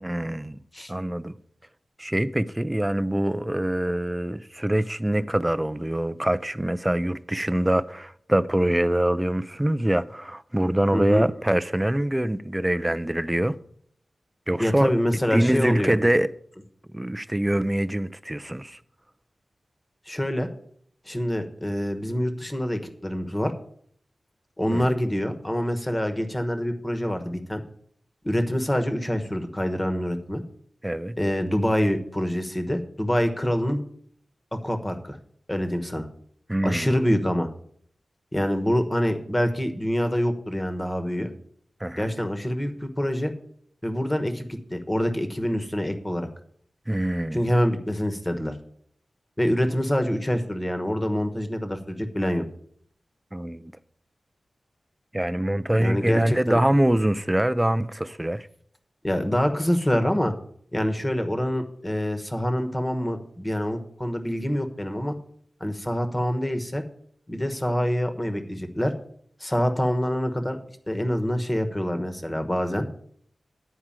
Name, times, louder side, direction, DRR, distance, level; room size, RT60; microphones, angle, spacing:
voice 1, 0.0-0.6 0.9-1.4 2.0-13.5 14.5-14.9 15.3-16.3 16.9-18.8 24.7-24.9 30.8-31.2 36.5-36.9 41.8-42.1 46.9-47.4 53.3-53.7 55.1-58.5, right 1 dB, 10° right, 0.4 m, -24 dB
voice 2, 10.9-11.2 14.6-15.9 20.1-20.5 21.1-23.5 24.6-27.6 28.2-30.4 31.2-33.8 34.5-35.2 35.5-36.1 36.6-37.5 38.3-41.3 41.9-43.3 43.8-46.3 47.3-48.5 49.4-52.4 55.8-56.6 59.0-60.3 60.7-65.2 65.6-66.8 67.3-68.9 69.4-70.6 70.9-72.9, equal, 15° left, 1.1 m, -26 dB
10.0 x 4.7 x 7.4 m
wide cardioid pair, 110°, 0 cm